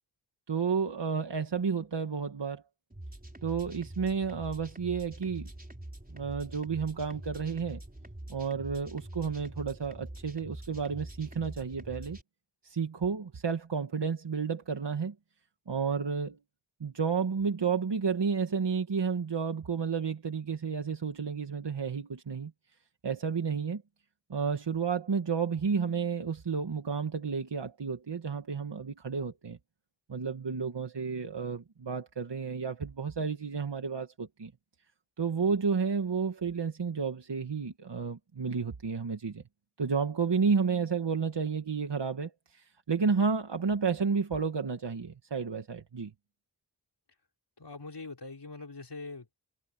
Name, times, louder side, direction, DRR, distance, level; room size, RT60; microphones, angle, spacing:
voice 1, 0.5-2.6 3.4-5.5 6.1-7.8 8.3-12.2 12.6-15.1 15.7-16.4 16.8-22.5 23.0-23.8 24.3-29.6 30.1-34.5 35.2-39.4 39.8-46.1, right 5 dB, 80° right, 1.6 m, -31 dB
sound 1, 2.9-12.2, right 1 dB, 20° right, 4.9 m, -45 dB
voice 2, 47.6-49.3, left 3 dB, 75° left, 5.2 m, -43 dB
wide cardioid pair, 70°, 41 cm